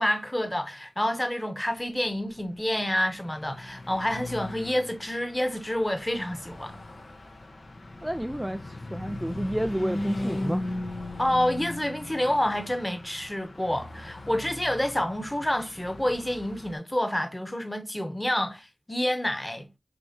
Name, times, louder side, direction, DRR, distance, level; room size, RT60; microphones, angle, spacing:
voice 1, 0.0-6.8 11.2-19.7, left 1 dB, 20° left, 1.0 m, -28 dB
Car passing by / Truck, 2.4-16.7, left 1 dB, 85° left, 1.1 m, -38 dB
voice 2, 8.0-8.6 8.9-10.6, equal, 10° right, 0.3 m, -29 dB
5.4 x 3.1 x 2.7 m
wide cardioid pair, 60°, 0 cm